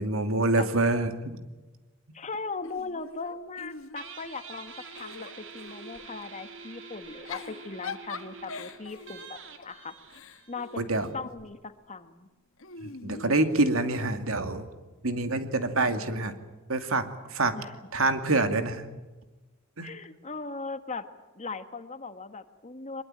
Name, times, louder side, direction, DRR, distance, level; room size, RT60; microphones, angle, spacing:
voice 1, 0.0-1.4 10.8-11.1 12.8-14.7 15.0-16.3 16.7-17.6 17.9-18.9 19.8-19.9, right 2 dB, 85° right, 8 dB, 2.5 m, -26 dB
voice 2, 2.1-9.9 10.5-10.8 11.1-12.3 17.5-17.7 19.8-21.1 21.3-23.0, left 4 dB, 35° left, 10 dB, 1.5 m, -39 dB
Giggle / Chuckle chortle, 2.6-4.3 4.7-6.1 7.0-11.5 12.6-14.0, left 4 dB, 70° left, 1.5 m, -43 dB
Guitar, 4.0-11.1, right 5 dB, 65° right, 2.9 m, -46 dB
23.5 x 22.0 x 9.0 m, 1.2 s
head